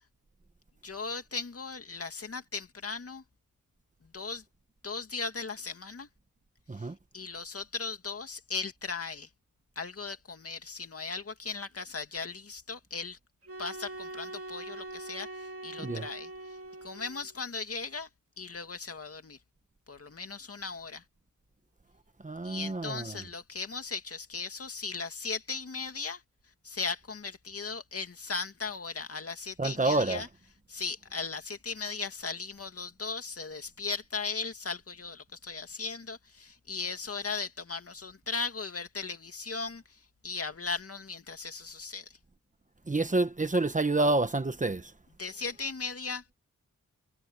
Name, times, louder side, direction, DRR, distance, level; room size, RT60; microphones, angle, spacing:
voice 1, 0.8-3.2 4.0-4.4 4.8-6.1 6.8-6.9 7.1-9.3 9.8-13.2 13.6-16.3 16.8-18.1 18.4-19.4 19.9-21.0 22.4-26.2 26.6-30.3 30.7-42.2 45.2-46.4, left 4 dB, 50° left, 2.3 m, -37 dB
sound 1, 13.4-17.4, right 1 dB, 45° right, 2.5 m, -43 dB
voice 2, 22.2-23.1 29.6-30.2 42.9-44.9, right 2 dB, 25° right, 1.2 m, -28 dB
wide cardioid pair, 125°, 31 cm